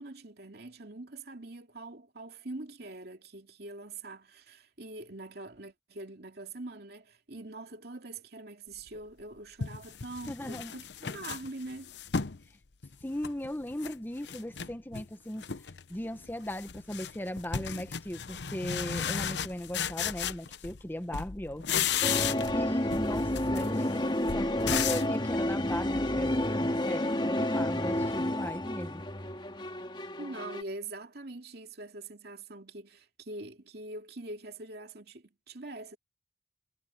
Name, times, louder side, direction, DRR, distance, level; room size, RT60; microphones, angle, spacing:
voice 1, 0.0-11.9 30.2-36.0, right 2 dB, 60° right, 2.6 m, -44 dB
sound 1, 9.0-9.1 9.6-12.4 12.8-14.0 14.2-15.1 15.4-15.8 16.1-20.9 21.1-22.6 22.9-25.2, left 7 dB, 80° left, 0.8 m, -34 dB
voice 2, 10.3-10.7 11.0-11.1 12.5-12.6 13.0-21.9 22.5-29.0, left 1 dB, 10° left, 0.9 m, -38 dB
sound 2, 22.0-30.6, left 1 dB, 30° left, 2.1 m, -30 dB
head